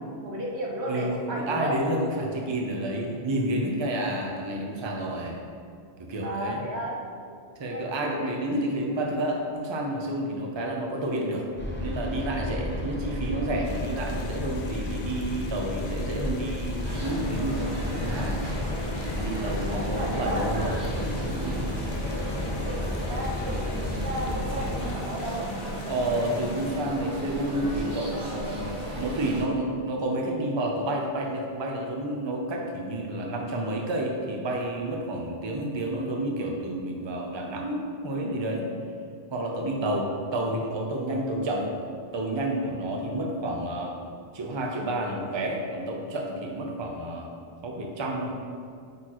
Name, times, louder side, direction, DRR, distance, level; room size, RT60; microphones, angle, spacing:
voice 1, 0.2-1.7 3.9-4.0 6.2-7.0 7.7-8.3 19.6-20.5 22.0-25.5 39.5-40.0, equal, 80° right, -3 dB, 1.4 m, -34 dB
voice 2, 0.8-5.4 6.0-6.6 7.6-11.5 11.8-18.4 19.1-21.7 25.9-38.7 39.3-41.7 42.1-43.9 44.3-47.3 47.6-48.3, right 1 dB, 30° right, 0 dB, 0.6 m, -30 dB
sound 1, 11.6-24.9, left 1 dB, 15° left, 0.6 m, -33 dB
sound 2, 13.6-26.7, left 5 dB, 75° left, 0.8 m, -48 dB
sound 3, 16.8-29.4, right 1 dB, 50° right, 1.4 m, -34 dB
8.4 x 4.3 x 3.0 m, 2.3 s
omnidirectional pair, 1.1 m